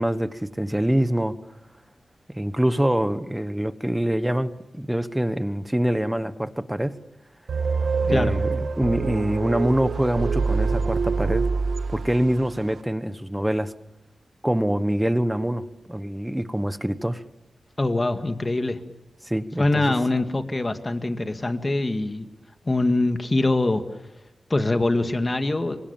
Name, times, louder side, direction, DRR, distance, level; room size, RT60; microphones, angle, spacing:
voice 1, 0.0-1.4 2.3-7.0 8.0-11.5 11.9-13.7 14.4-17.2 19.2-20.0, right 1 dB, 5° right, 13 dB, 1.1 m, -25 dB
sound 1, 7.5-12.5, right 4 dB, 75° right, 1.5 m, -25 dB
voice 2, 17.8-18.8 19.6-22.3 22.7-23.8 24.5-25.8, left 2 dB, 25° left, 8 dB, 2.0 m, -23 dB
28.0 x 25.0 x 7.2 m, 0.94 s
wide cardioid pair, 140°, 0 cm